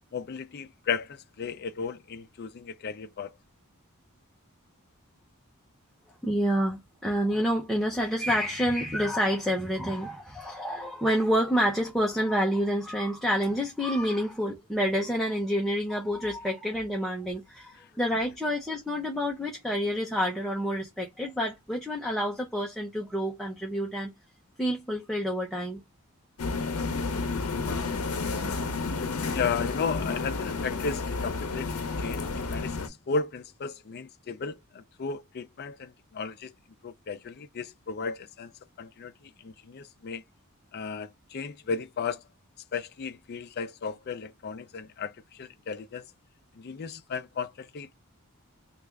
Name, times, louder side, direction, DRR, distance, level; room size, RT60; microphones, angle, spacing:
voice 1, 0.1-3.3 29.3-36.5 36.8-38.5 38.8-40.2 40.7-42.2 42.7-46.1 46.5-47.9, left 5 dB, 45° left, 0.4 m, -35 dB
voice 2, 6.2-24.1 24.6-25.8, equal, ahead, 0.6 m, -28 dB
sound 1, 26.4-32.9, left 4 dB, 85° left, 0.7 m, -31 dB
3.2 x 2.4 x 3.4 m
head